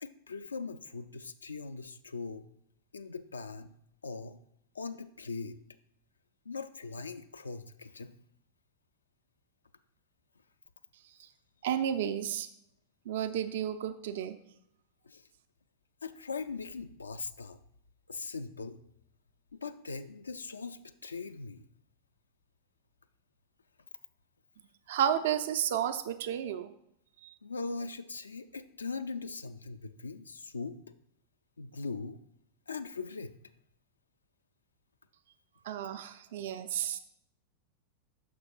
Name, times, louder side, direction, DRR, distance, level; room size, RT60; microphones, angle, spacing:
voice 1, 0.0-2.5 2.9-3.7 4.0-4.4 4.7-5.6 6.5-8.1 15.1-15.2 16.0-17.6 18.1-18.8 19.5-21.7 27.4-30.8 31.6-32.2 32.7-33.3, left 4 dB, 75° left, 9 dB, 0.3 m, -40 dB
voice 2, 11.6-12.5 13.1-14.4 24.9-26.7 27.2-27.3 35.6-37.0, right 9 dB, 55° right, 10 dB, 0.4 m, -32 dB
9.3 x 6.3 x 2.3 m, 0.75 s
figure-of-eight pair, 90°, 0 cm